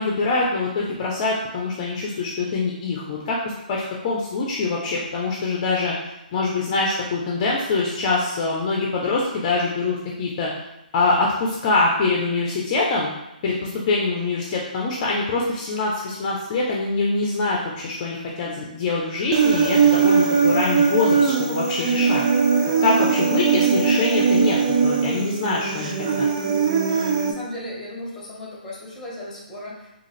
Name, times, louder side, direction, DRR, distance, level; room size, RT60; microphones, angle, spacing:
voice 1, 0.0-3.4 3.7-5.9 6.3-10.5 10.9-13.1 13.4-22.2 22.8-24.6 24.8-26.3, left 3 dB, 40° left, -3 dB, 0.6 m, -24 dB
Human voice, 19.3-27.3, right 5 dB, 40° right, 0.5 m, -20 dB
voice 2, 27.2-29.9, left 1 dB, 10° left, -5 dB, 1.2 m, -36 dB
3.7 x 2.5 x 3.2 m, 0.92 s
hypercardioid pair, 140°, 5 cm